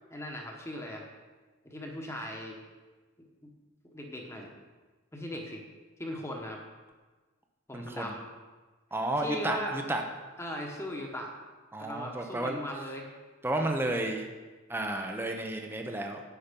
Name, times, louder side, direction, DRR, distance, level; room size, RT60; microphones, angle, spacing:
voice 1, 0.1-1.0 1.6-2.6 3.9-4.5 5.1-5.6 6.0-6.6 7.7-8.2 9.2-9.7 10.4-11.3 11.8-13.1, left 1 dB, 15° left, 0 dB, 1.2 m, -38 dB
voice 2, 7.7-8.1 8.9-10.0 11.7-12.6 13.4-14.2 14.7-16.2, right 1 dB, 10° right, 3 dB, 0.7 m, -32 dB
9.9 x 7.4 x 5.3 m, 1.3 s
head